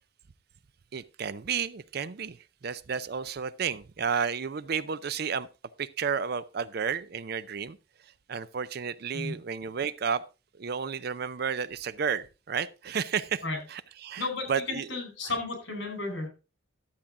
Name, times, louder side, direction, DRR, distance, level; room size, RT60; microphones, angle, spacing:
voice 1, 0.9-5.5 5.8-7.8 8.3-10.2 10.6-14.9 15.2-15.4, right 6 dB, 55° right, 0.5 m, -32 dB
voice 2, 14.2-16.3, left 3 dB, 65° left, 4.2 m, -33 dB
12.0 x 7.3 x 3.7 m
head